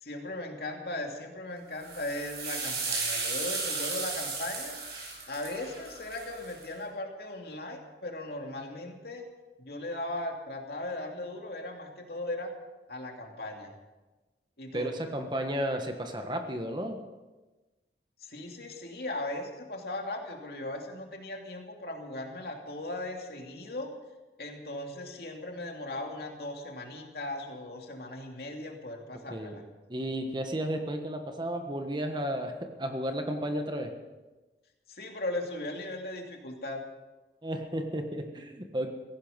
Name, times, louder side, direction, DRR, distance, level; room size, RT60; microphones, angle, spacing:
voice 1, 0.0-4.8 5.3-9.3 9.6-12.5 12.9-13.7 14.6-14.9 18.2-23.9 24.4-29.6 34.9-36.8, left 1 dB, 60° left, 2 dB, 2.7 m, -38 dB
sound 1, 1.8-6.6, right 4 dB, 65° right, 7.5 m, -35 dB
voice 2, 14.7-17.0 29.3-29.6 29.9-32.5 32.8-33.9 37.4-38.9, right 1 dB, 25° right, 5 dB, 1.4 m, -33 dB
17.0 x 16.0 x 5.3 m, 1.2 s
head